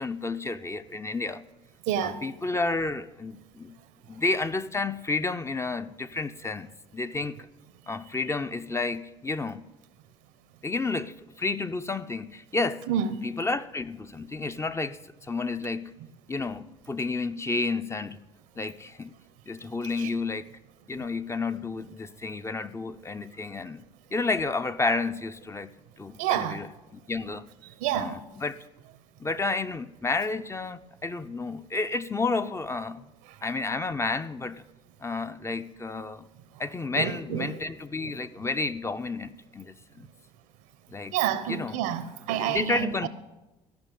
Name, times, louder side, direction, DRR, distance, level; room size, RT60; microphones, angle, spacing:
voice 1, 0.0-1.4 2.0-3.8 4.1-7.5 7.9-9.6 10.6-12.8 13.2-15.9 16.3-18.2 18.6-19.1 19.5-20.5 20.9-23.8 24.1-26.7 26.9-27.5 27.9-28.6 29.2-33.1 33.4-34.6 35.0-36.3 36.6-40.1 40.9-41.2 41.5-41.8 42.3-43.1, left 3 dB, 15° left, 0.6 m, -31 dB
voice 2, 1.9-2.2 12.9-13.3 20.0-20.1 26.2-26.6 27.8-28.2 36.9-37.7 38.0-38.2 41.1-43.1, right 10 dB, 75° right, 0.8 m, -29 dB
14.0 x 5.6 x 8.5 m
hypercardioid pair, 65°, 15 cm